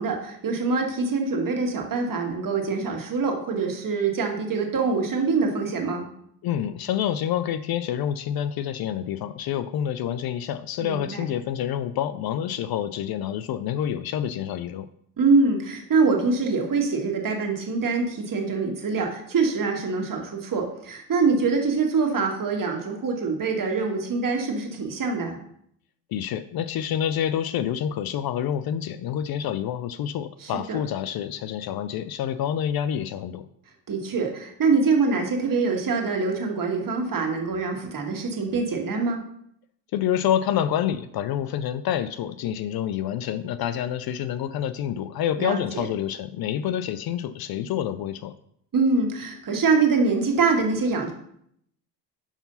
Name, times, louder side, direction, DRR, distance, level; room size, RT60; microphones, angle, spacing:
voice 1, 0.0-6.1 10.8-11.2 15.2-25.4 30.4-30.8 33.9-39.2 45.4-45.9 48.7-51.1, right 4 dB, 40° right, 2 dB, 1.7 m, -24 dB
voice 2, 6.4-14.9 26.1-33.4 39.9-48.3, left 10 dB, 50° left, 12 dB, 0.5 m, -27 dB
5.2 x 4.8 x 5.5 m, 0.70 s
hypercardioid pair, 60°, 49 cm